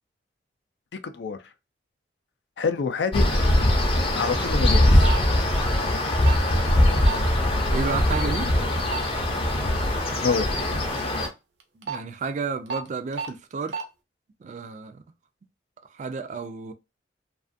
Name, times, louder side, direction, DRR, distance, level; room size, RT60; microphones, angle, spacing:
voice 1, 0.9-1.4 2.6-3.3 4.1-5.1 10.2-10.5, left 5 dB, 80° left, 0.4 m, -26 dB
sound 1, 3.1-11.3, left 1 dB, 30° left, 0.5 m, -21 dB
sound 2, 5.0-5.2 6.2-6.4 7.1-7.2 8.1-8.3 8.9-9.0 11.6-12.0 12.7-12.8 13.1-13.3 13.7-13.8, right 6 dB, 85° right, 0.6 m, -30 dB
voice 2, 7.7-8.5 11.8-13.8 14.4-15.0 15.9-16.7, right 5 dB, 40° right, 0.3 m, -31 dB
2.5 x 2.4 x 2.4 m
head